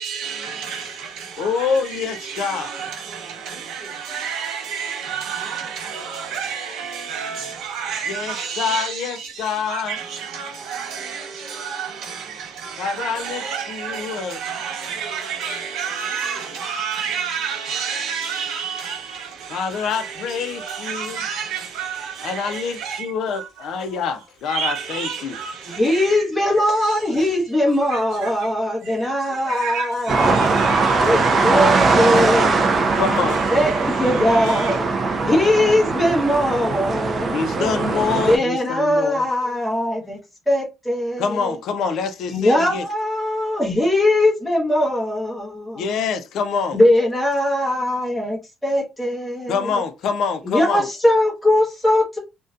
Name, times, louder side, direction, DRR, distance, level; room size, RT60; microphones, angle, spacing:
voice 1, 0.0-24.1 24.5-27.4 27.6-34.8, right 7 dB, 75° right, 0.8 m, -31 dB
voice 2, 1.4-2.7 8.1-10.0 12.8-14.4 19.5-21.2 22.2-25.4 31.3-31.4 32.9-33.4 37.3-39.3 41.2-42.9 45.7-46.8 49.5-50.9, left 6 dB, 60° left, 0.4 m, -26 dB
voice 3, 25.7-30.6 31.0-32.7 33.5-34.9 35.3-37.6 38.2-40.2 40.5-41.6 42.3-45.8 46.7-49.8 50.4-52.2, left 1 dB, 5° left, 0.8 m, -20 dB
sound 1, 30.1-38.4, right 3 dB, 30° right, 0.3 m, -20 dB
2.6 x 2.1 x 2.4 m
cardioid pair, 175°, 0 cm